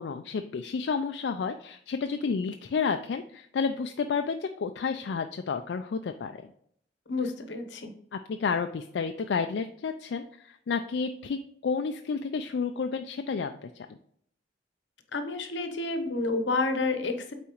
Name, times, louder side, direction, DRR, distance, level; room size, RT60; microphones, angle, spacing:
voice 1, 0.0-6.4 8.1-11.4 11.6-14.0, left 5 dB, 70° left, 6 dB, 0.4 m, -31 dB
voice 2, 7.1-7.9 15.1-17.3, left 3 dB, 90° left, 7 dB, 0.9 m, -29 dB
8.4 x 4.1 x 3.0 m, 0.67 s
head